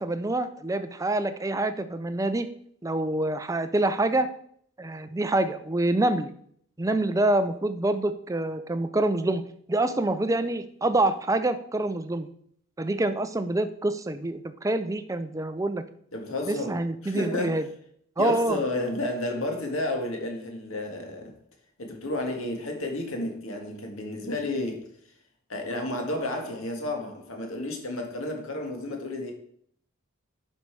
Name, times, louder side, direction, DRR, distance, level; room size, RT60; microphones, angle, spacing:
voice 1, 0.0-2.5 2.8-4.3 4.8-6.3 6.8-9.4 9.7-12.3 12.8-15.8 16.5-17.7 18.2-18.6, right 2 dB, 15° right, 0.4 m, -26 dB
voice 2, 16.1-16.8 17.0-17.6 18.2-21.4 21.8-24.8 25.5-29.3, left 1 dB, 70° left, 1.9 m, -31 dB
11.0 x 5.5 x 4.7 m
head